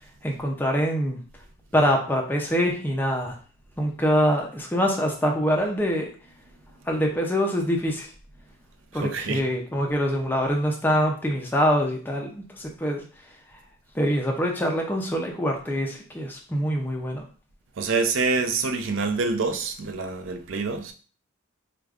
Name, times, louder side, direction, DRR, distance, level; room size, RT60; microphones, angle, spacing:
voice 1, 0.2-1.2 1.7-3.4 3.8-6.1 6.9-8.1 8.9-13.6 13.9-17.3, equal, 10° left, 0.4 m, -25 dB
voice 2, 8.9-9.4 17.8-20.9, right 4 dB, 65° right, 0.5 m, -26 dB
4.8 x 2.2 x 2.3 m
head